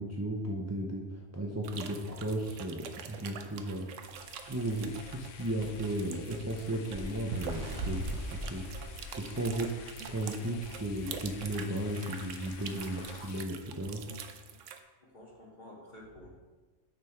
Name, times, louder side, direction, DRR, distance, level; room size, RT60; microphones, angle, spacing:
voice 1, 0.0-3.9 4.5-8.9 9.2-9.7 10.1-14.0, right 1 dB, 20° right, -1 dB, 0.6 m, -35 dB
sound 1, 1.6-14.8, right 7 dB, 90° right, 1.0 m, -46 dB
sound 2, 4.0-13.4, left 7 dB, 80° left, 0.9 m, -49 dB
Bird, 6.9-10.1 10.5-10.7 11.0-11.2 12.0-12.1, right 2 dB, 75° right, 1.3 m, -39 dB
voice 2, 15.0-16.3, left 1 dB, 40° left, -3 dB, 1.8 m, -51 dB
6.8 x 6.6 x 4.6 m, 1.3 s
omnidirectional pair, 1.3 m